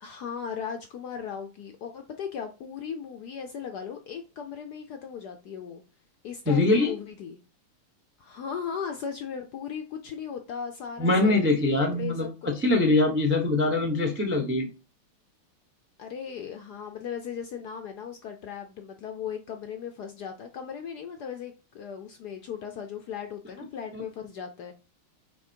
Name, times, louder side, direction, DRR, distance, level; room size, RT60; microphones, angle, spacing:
voice 1, 0.0-5.8 6.2-7.4 8.2-11.6 11.9-12.3 16.0-24.7, left 7 dB, 70° left, 1.0 m, -37 dB
voice 2, 6.5-6.9 11.0-14.7 23.9-24.0, left 2 dB, 15° right, 0.4 m, -23 dB
5.9 x 4.5 x 4.5 m
omnidirectional pair, 2.3 m